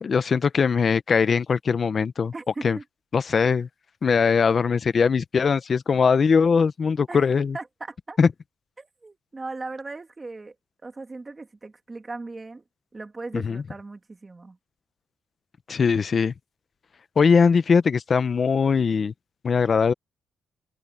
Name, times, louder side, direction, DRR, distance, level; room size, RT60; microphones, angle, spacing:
voice 1, 0.0-2.3 2.6-2.8 3.1-3.7 4.0-7.6 8.2-8.3 13.3-13.6 15.7-16.3 17.2-19.1 19.4-19.9, left 5 dB, 35° left, 0.8 m, -21 dB
voice 2, 2.3-2.8 7.1-7.2 7.5-8.2 8.8-10.5 10.8-12.6 12.9-14.6, right 3 dB, 20° right, 2.2 m, -38 dB
cardioid pair, 140°, 0 cm